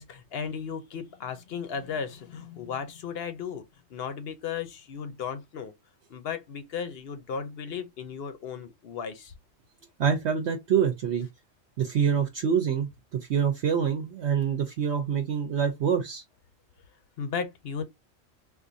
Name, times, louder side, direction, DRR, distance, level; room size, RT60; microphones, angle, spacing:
voice 1, 0.0-5.7 6.1-9.3 17.2-17.8, left 6 dB, 60° left, 0.8 m, -35 dB
voice 2, 10.0-11.3 11.8-16.2, right 7 dB, 65° right, 0.9 m, -26 dB
3.9 x 2.5 x 2.6 m
omnidirectional pair, 1.3 m